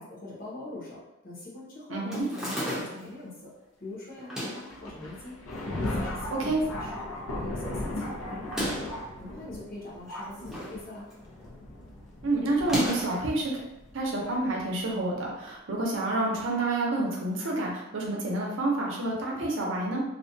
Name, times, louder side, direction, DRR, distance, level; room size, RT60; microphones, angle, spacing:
voice 1, 0.0-3.5 3.8-5.4 5.6-8.9 9.2-11.1, left 2 dB, 45° left, -5 dB, 0.8 m, -43 dB
voice 2, 1.9-2.3 6.4-6.6 12.2-13.6 13.9-20.0, right 2 dB, 65° right, -2 dB, 0.6 m, -28 dB
sound 1, 2.1-3.1 4.2-4.7 5.5-6.2 6.5-6.6 6.8-6.9 8.4-9.0 10.0-10.8 11.1-11.4 12.6-13.2, equal, 5° right, 0.5 m, -34 dB
Thunder, 4.7-14.6 15.4-15.5 16.5-16.6 17.4-17.6, left 1 dB, 90° left, 0.6 m, -37 dB
2.5 x 2.2 x 2.6 m, 0.91 s
head